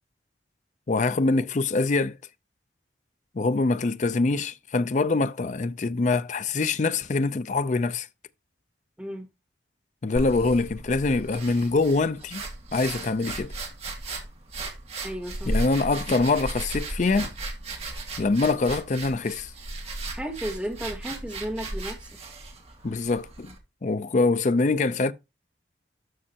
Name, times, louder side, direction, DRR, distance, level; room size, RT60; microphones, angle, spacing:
voice 1, 0.9-2.2 3.4-8.1 10.0-12.4 12.7-13.5 15.5-17.3 18.2-19.5 22.8-23.5 23.8-25.1, left 3 dB, 40° left, 0.4 m, -24 dB
sound 1, 10.2-23.6, right 2 dB, 35° right, 1.9 m, -35 dB
voice 2, 15.0-15.5 20.1-22.1, equal, 5° right, 1.8 m, -34 dB
12.5 x 5.4 x 2.8 m
head